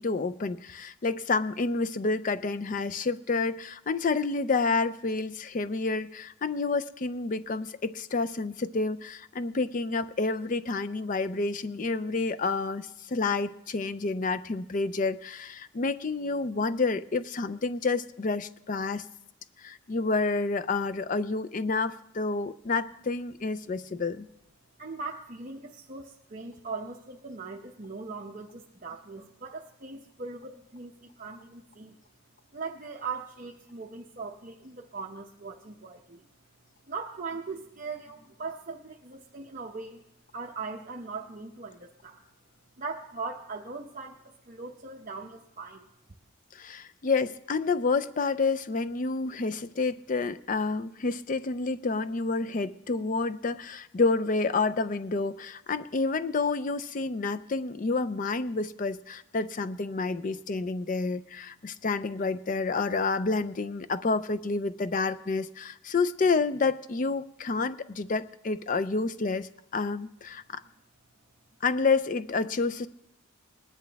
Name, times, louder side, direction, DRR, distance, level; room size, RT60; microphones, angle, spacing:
voice 1, 0.0-19.0 19.6-24.3 46.5-70.6 71.6-72.9, left 3 dB, 40° left, 13 dB, 0.4 m, -29 dB
voice 2, 24.8-32.0 32.5-36.3 36.9-40.0 40.3-42.2 42.8-45.9, right 4 dB, 40° right, 0 dB, 0.8 m, -40 dB
20.5 x 10.5 x 3.4 m, 0.82 s
head